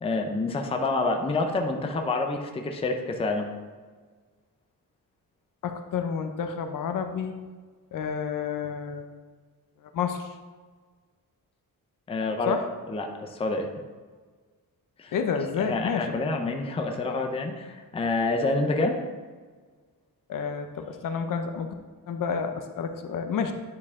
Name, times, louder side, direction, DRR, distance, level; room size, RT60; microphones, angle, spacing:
voice 1, 0.0-3.5 12.1-12.6 12.9-13.7 15.0-15.1 15.6-19.0, left 3 dB, 15° left, 4 dB, 0.5 m, -27 dB
voice 2, 5.6-7.3 7.9-9.1 9.9-10.3 12.5-12.7 15.1-16.1 20.3-21.7 22.1-23.5, left 6 dB, 60° left, 7 dB, 0.7 m, -29 dB
9.6 x 4.6 x 3.6 m, 1.5 s
wide cardioid pair, 160°, 36 cm